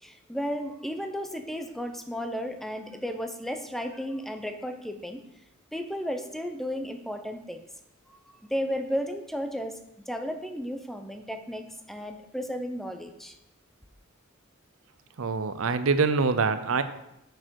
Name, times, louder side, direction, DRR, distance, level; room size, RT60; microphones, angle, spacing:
voice 1, 0.0-5.2 5.7-7.6 8.1-9.8 10.1-13.4, equal, ahead, 6 dB, 0.6 m, -34 dB
voice 2, 15.2-16.8, right 4 dB, 75° right, 11 dB, 0.6 m, -24 dB
6.6 x 6.2 x 4.6 m, 0.85 s
head